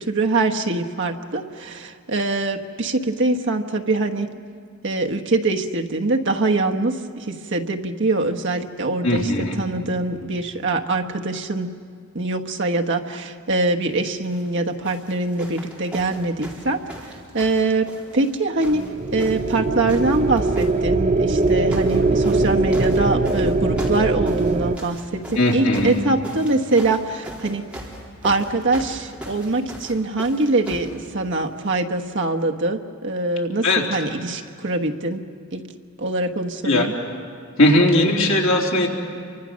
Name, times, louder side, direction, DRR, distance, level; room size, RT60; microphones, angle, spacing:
voice 1, 0.0-4.3 4.8-9.3 9.6-11.7 12.1-18.9 19.1-27.6 28.2-35.2 35.5-35.6 36.0-36.9, right 2 dB, 60° right, 3 dB, 1.3 m, -23 dB
voice 2, 9.0-9.6 25.4-26.0 33.6-33.8 36.6-36.9 37.6-38.9, left 1 dB, 70° left, -2 dB, 3.4 m, -18 dB
sound 1, 14.2-14.5 14.8-18.3 18.6-19.6 19.9-20.7 21.4-22.0 22.2-30.9 31.8-31.9, right 1 dB, 5° right, 4.0 m, -38 dB
sound 2, 18.6-24.8, right 3 dB, 35° right, 0.6 m, -21 dB
29.5 x 24.5 x 6.4 m, 2.1 s
head